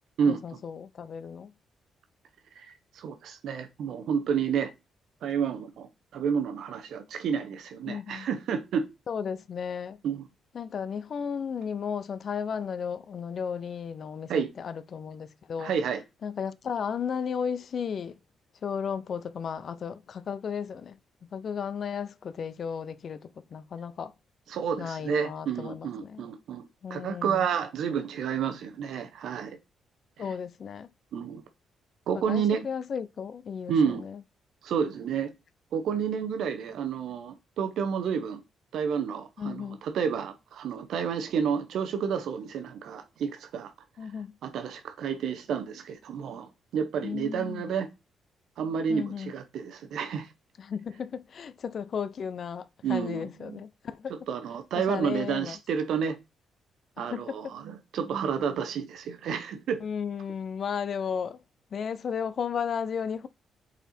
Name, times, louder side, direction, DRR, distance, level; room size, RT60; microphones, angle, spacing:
voice 1, 0.3-1.5 7.9-8.3 9.1-10.0 10.5-15.7 16.2-18.2 18.6-21.0 21.3-24.1 24.8-26.2 26.8-27.5 30.2-30.9 32.1-34.2 39.4-39.8 44.0-44.4 47.0-47.8 48.9-49.3 50.6-54.1 54.8-55.6 57.1-57.5 59.8-61.4 61.7-63.3, left 7 dB, 55° left, 0.4 m, -34 dB
voice 2, 2.6-4.7 5.2-5.9 6.1-8.9 10.0-10.2 14.3-14.5 15.6-16.0 24.5-26.6 26.9-29.6 31.1-31.4 32.1-32.7 33.7-34.0 34.6-35.3 35.7-38.4 38.7-43.7 44.4-47.9 48.6-50.3 52.8-53.6 54.3-56.2 57.0-59.8, right 7 dB, 75° right, 0.7 m, -30 dB
5.4 x 4.2 x 4.3 m
cardioid pair, 100°, 0 cm